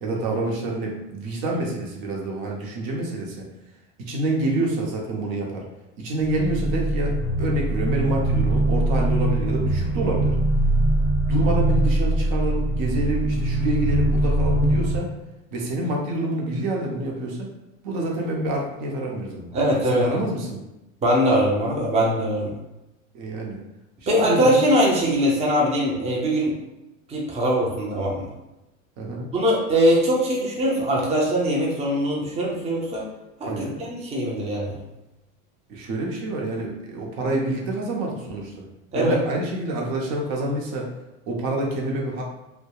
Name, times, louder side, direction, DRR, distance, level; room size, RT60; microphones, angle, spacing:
voice 1, 0.0-3.5 4.0-5.6 6.0-10.4 11.3-15.1 15.5-17.5 17.8-20.6 23.1-23.6 24.2-24.6 29.0-29.3 33.5-33.8 35.7-38.7 38.9-40.9 41.3-42.2, right 1 dB, 60° right, -1 dB, 0.7 m, -27 dB
sound 1, 6.2-15.0, right 1 dB, 15° left, 1.2 m, -22 dB
voice 2, 19.5-20.2 21.0-22.5 24.1-26.5 27.1-28.3 29.3-33.0 33.4-33.5 33.9-34.8 38.9-39.2, equal, 15° right, -3 dB, 0.5 m, -21 dB
2.7 x 2.2 x 2.3 m, 0.96 s
supercardioid pair, 100°, 38 cm